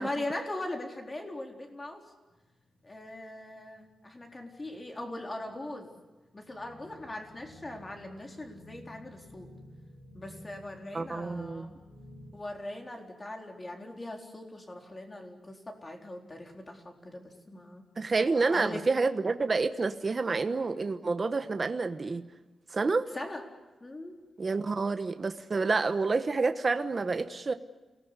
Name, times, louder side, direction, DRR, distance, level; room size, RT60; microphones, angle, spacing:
voice 1, 0.0-2.1 2.8-5.9 6.3-9.5 10.1-11.7 12.3-17.8 18.5-18.8 23.1-23.4 23.8-24.2, left 1 dB, 25° left, 2 dB, 4.1 m, -40 dB
sound 1, 2.3-12.3, left 1 dB, 50° left, 7.3 m, -54 dB
voice 2, 10.9-11.7 18.0-22.3 22.7-23.1 24.4-27.5, right 4 dB, 35° right, 8 dB, 1.2 m, -28 dB
28.5 x 19.0 x 8.3 m, 1.2 s
wide cardioid pair, 135°, 0 cm